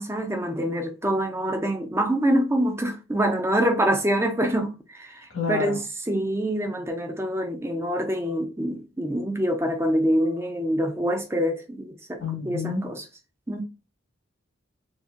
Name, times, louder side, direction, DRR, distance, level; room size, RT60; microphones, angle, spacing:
voice 1, 0.0-5.2 5.5-5.8 6.1-13.0 13.5-13.6, equal, 10° right, 0.5 m, -25 dB
voice 2, 5.3-5.8 12.2-12.9, left 4 dB, 85° left, 1.5 m, -29 dB
4.0 x 2.7 x 2.4 m
head